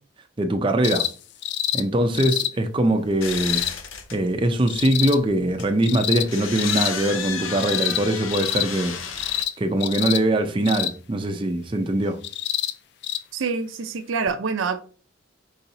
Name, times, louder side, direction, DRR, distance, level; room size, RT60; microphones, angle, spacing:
voice 1, 0.4-1.0 1.7-3.6 4.1-8.9 9.6-12.2, right 1 dB, 25° right, 0.5 m, -22 dB
sound 1, 0.8-1.1 1.4-1.8 2.1-2.5 3.3-3.7 4.7-5.2 5.8-6.3 6.6-6.9 7.6-8.0 8.3-8.7 9.2-9.5 9.8-10.2 10.7-10.9 12.2-12.7 13.0-13.2 14.3-14.4, left 12 dB, 55° left, 0.3 m, -26 dB
sound 2, 3.0-9.4, left 6 dB, 85° left, 0.8 m, -33 dB
voice 2, 13.3-14.8, right 5 dB, 75° right, 0.5 m, -26 dB
4.8 x 4.1 x 2.7 m
head